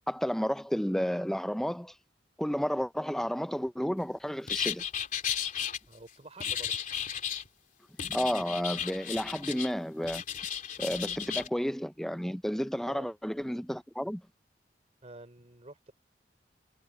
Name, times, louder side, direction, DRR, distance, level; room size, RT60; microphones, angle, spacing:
voice 1, 0.1-1.9 2.4-4.8 8.0-10.2 10.8-14.2, equal, ahead, 0.5 m, -31 dB
sound 1, 4.5-5.8 6.4-7.5 8.0-9.7 10.0-11.5, left 8 dB, 50° left, 3.2 m, -34 dB
voice 2, 5.9-6.7 12.9-13.1 15.0-15.9, right 2 dB, 40° right, 3.3 m, -49 dB
head